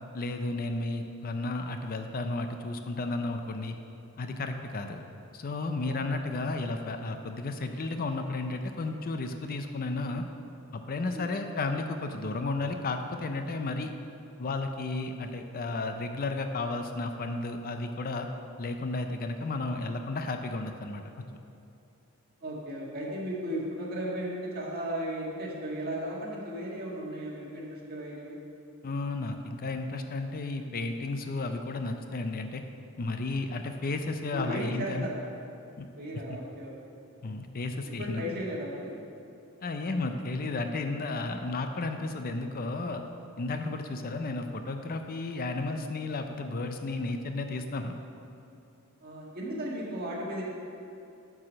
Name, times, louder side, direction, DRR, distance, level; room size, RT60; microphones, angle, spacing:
voice 1, 0.1-3.8 4.2-5.0 5.3-10.2 10.7-13.9 14.4-18.3 18.6-21.3 28.8-32.6 33.0-35.1 35.8-35.9 37.2-38.4 39.6-43.0 43.4-47.9, left 2 dB, 40° left, 6 dB, 0.5 m, -33 dB
voice 2, 22.4-28.4 34.3-35.2 35.9-36.7 38.0-38.9 49.0-50.4, equal, 45° right, -4 dB, 1.7 m, -35 dB
9.7 x 4.9 x 6.3 m, 2.7 s
head